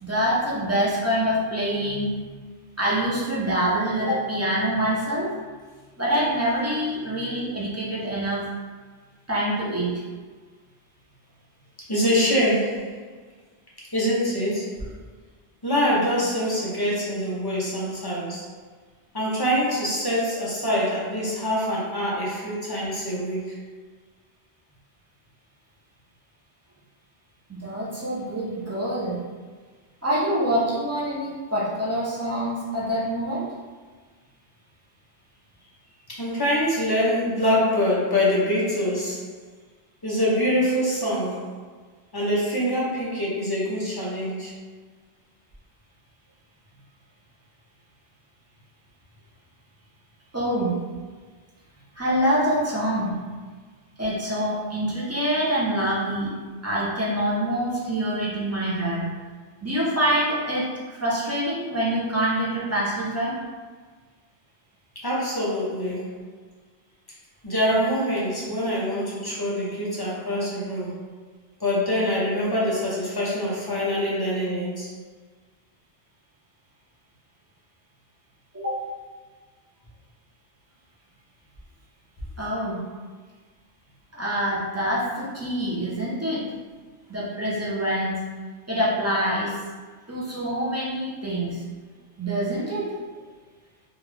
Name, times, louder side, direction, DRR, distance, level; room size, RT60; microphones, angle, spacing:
voice 1, 0.0-2.4 2.8-5.3 6.0-8.5 9.3-10.0 27.5-29.2 30.0-33.5 50.3-50.8 51.9-53.2 54.0-56.4 56.6-59.1 59.6-63.3 78.5-78.8 82.4-82.8 84.1-86.5 87.1-88.3 88.7-89.6 90.1-91.6 92.2-92.9, right 1 dB, 20° right, -7 dB, 0.5 m, -25 dB
voice 2, 11.9-13.0 13.9-14.9 15.6-18.5 19.1-23.6 36.1-39.3 40.0-41.5 42.1-44.5 64.9-66.1 67.4-71.0 71.6-74.9, equal, 25° left, -6 dB, 0.7 m, -24 dB
3.2 x 2.3 x 3.3 m, 1.5 s
omnidirectional pair, 1.1 m